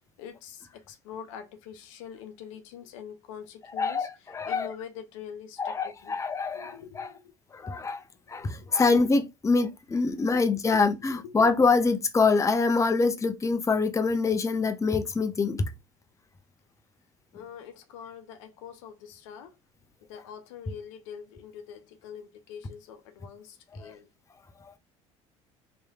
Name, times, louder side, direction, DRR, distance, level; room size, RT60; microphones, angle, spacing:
voice 1, 0.2-4.1 4.5-6.2 6.5-7.3 8.3-8.8 10.7-10.8 11.1-11.4 17.3-19.6 20.1-24.1, left 8 dB, 75° left, 0.6 m, -44 dB
voice 2, 3.8-4.7 5.6-7.1 7.5-8.0 8.3-15.6, left 4 dB, 20° left, 0.6 m, -25 dB
3.1 x 2.9 x 2.3 m
hypercardioid pair, 60°, 17 cm